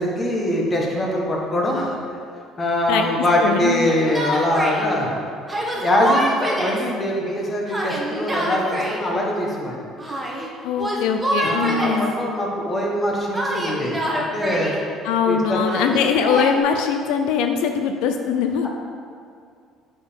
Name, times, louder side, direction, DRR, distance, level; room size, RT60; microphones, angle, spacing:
voice 1, 0.0-1.9 2.6-5.1 5.7-9.8 11.4-14.7 15.2-15.9, left 1 dB, 25° left, -2 dB, 1.5 m, -23 dB
voice 2, 3.4-3.8 10.6-12.1 15.0-18.7, left 6 dB, 85° left, 5 dB, 0.5 m, -21 dB
Yell, 3.8-4.8 5.5-6.9 7.7-9.0 10.0-10.5 10.8-12.1 13.3-14.8 15.7-16.5, right 1 dB, 10° right, 1.2 m, -26 dB
8.0 x 5.0 x 5.3 m, 2.3 s
cardioid pair, 130°, 0 cm